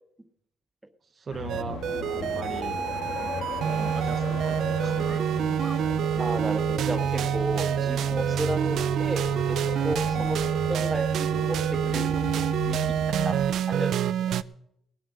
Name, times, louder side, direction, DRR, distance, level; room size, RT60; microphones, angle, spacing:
voice 1, 1.0-1.8 2.1-2.8 3.5-5.2 5.6-5.7, right 5 dB, 40° right, 6 dB, 0.8 m, -39 dB
sound 1, 1.3-13.5, left 4 dB, 90° left, 1.5 m, -36 dB
sound 2, 1.5-14.4, right 9 dB, 75° right, 0.4 m, -27 dB
sound 3, 4.0-9.2, equal, 5° left, 1.3 m, -50 dB
voice 2, 6.2-10.4 10.7-12.9 13.2-14.4, right 1 dB, 10° right, 7 dB, 1.6 m, -33 dB
18.5 x 8.0 x 6.2 m, 0.76 s
cardioid pair, 90°, 0 cm